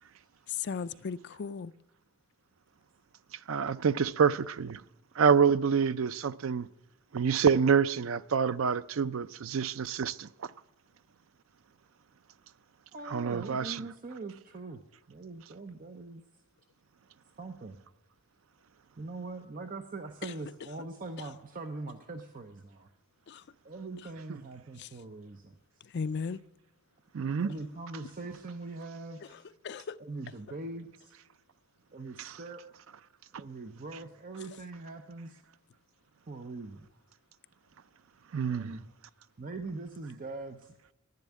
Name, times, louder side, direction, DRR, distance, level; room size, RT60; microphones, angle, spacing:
voice 1, 0.5-1.7 20.2-20.3 23.3-23.4 24.8-24.9 25.8-26.4 29.3-30.0, left 6 dB, 55° left, 0.4 m, -36 dB
voice 2, 3.5-4.8 5.2-6.7 7.1-10.3 13.1-13.8 27.1-27.5 38.3-38.7, right 6 dB, 70° right, 0.4 m, -27 dB
voice 3, 12.9-14.8 15.1-16.2 17.4-17.8 19.0-22.9 23.6-25.5 27.4-29.2 30.0-31.1 31.9-32.8 33.3-35.4 36.3-36.9 38.4-38.8 39.4-40.7, right 3 dB, 40° right, 0.7 m, -42 dB
10.5 x 9.9 x 9.2 m
head